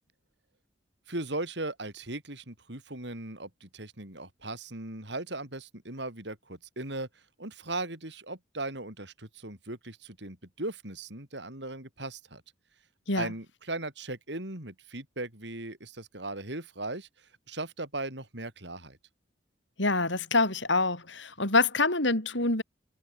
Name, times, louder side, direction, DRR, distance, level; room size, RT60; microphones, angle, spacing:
voice 1, 1.1-7.1 7.4-12.4 13.1-17.1 17.5-19.0, right 2 dB, 60° right, 5.0 m, -38 dB
voice 2, 19.8-22.6, left 3 dB, 75° left, 7.9 m, -26 dB
head